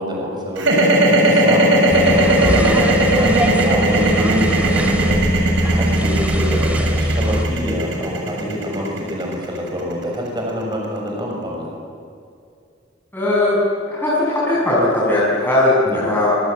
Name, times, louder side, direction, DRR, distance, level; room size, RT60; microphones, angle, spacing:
voice 1, 0.0-11.8 15.8-16.1, equal, 25° right, -1 dB, 6.2 m, -26 dB
sound 1, 0.6-10.7, right 1 dB, 75° right, 6.9 m, -17 dB
sound 2, 1.9-7.4, equal, 5° right, 2.8 m, -22 dB
voice 2, 13.1-13.6 13.9-16.3, left 2 dB, 10° left, -7 dB, 6.9 m, -18 dB
26.0 x 26.0 x 8.4 m, 2.4 s
head